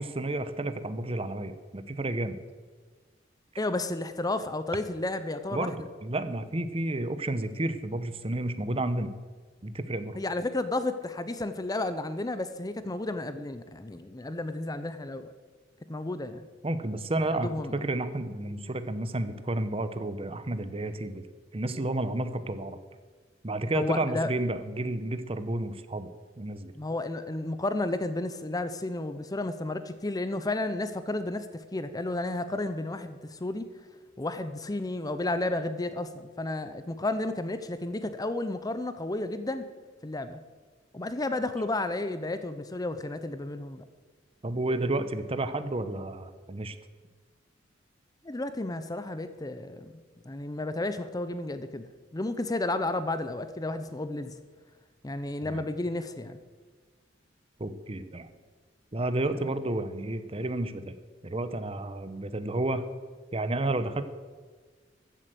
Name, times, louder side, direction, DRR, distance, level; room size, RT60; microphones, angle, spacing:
voice 1, 0.0-2.4 5.5-9.1 9.6-10.2 16.6-21.2 21.5-22.8 23.4-26.1 26.4-27.0 44.4-46.7 55.4-55.7 57.6-58.3 58.9-60.9 61.2-62.8 63.3-64.0, right 2 dB, 30° right, 11 dB, 0.8 m, -31 dB
voice 2, 3.6-5.8 10.2-15.3 15.9-16.5 17.4-17.8 23.7-24.3 26.8-33.7 34.2-39.6 40.0-40.4 40.9-43.8 48.2-51.9 52.1-54.3 55.0-56.4, left 2 dB, 20° left, 11 dB, 0.6 m, -32 dB
14.5 x 7.7 x 7.8 m, 1.5 s
head